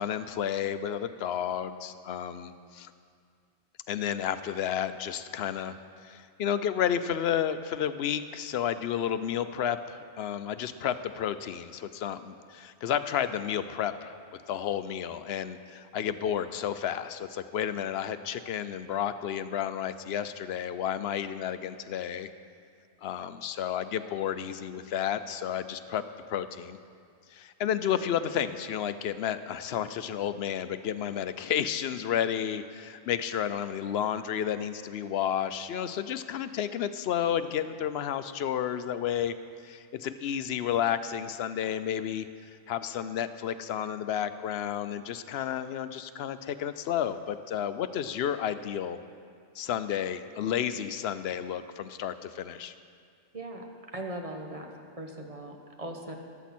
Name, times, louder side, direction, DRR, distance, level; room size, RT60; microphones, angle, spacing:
voice 1, 0.0-2.9 3.9-5.7 6.0-14.1 14.5-22.3 23.0-26.0 26.3-26.8 27.3-39.3 39.6-49.0 49.5-52.7, left 9 dB, 65° left, 12 dB, 0.8 m, -31 dB
voice 2, 53.3-53.6 53.9-54.7 55.0-56.1, right 1 dB, 30° right, 2 dB, 1.2 m, -39 dB
14.0 x 12.0 x 4.3 m, 2.2 s
omnidirectional pair, 1.2 m